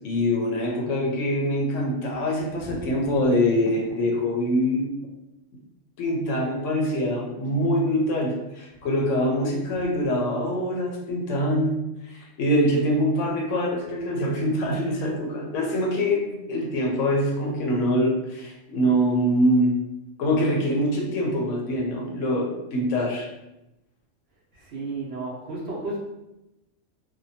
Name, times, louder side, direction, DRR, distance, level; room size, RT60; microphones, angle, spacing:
voice 1, 0.0-5.0 6.0-19.7 20.2-23.3, equal, 75° left, -1 dB, 0.9 m, -24 dB
voice 2, 24.5-26.0, right 2 dB, 60° right, -4 dB, 0.8 m, -33 dB
2.7 x 2.2 x 2.7 m, 0.94 s
omnidirectional pair, 1.3 m